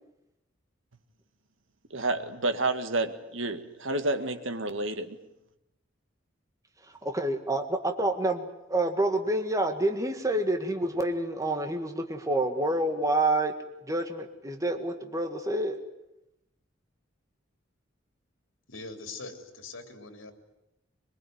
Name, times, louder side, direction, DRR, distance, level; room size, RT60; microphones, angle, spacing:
voice 1, 1.9-5.2, right 2 dB, 70° right, 8 dB, 2.0 m, -30 dB
voice 2, 7.0-13.5 13.9-15.8, right 1 dB, 15° right, 5 dB, 1.9 m, -28 dB
voice 3, 18.7-20.3, left 3 dB, 80° left, 6 dB, 3.8 m, -42 dB
23.0 x 22.0 x 9.5 m, 0.88 s
head